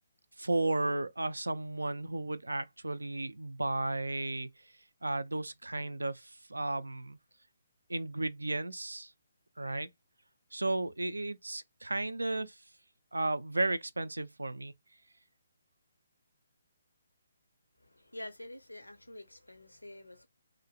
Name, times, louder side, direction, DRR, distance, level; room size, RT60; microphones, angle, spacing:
voice 1, 0.4-4.5 5.0-7.2 7.9-9.1 9.6-9.9 10.5-12.6 13.1-14.7, right 2 dB, 75° right, 0.4 m, -34 dB
voice 2, 17.8-20.3, left 1 dB, 80° left, 0.6 m, -47 dB
2.5 x 2.0 x 2.8 m
figure-of-eight pair, 140°, 0 cm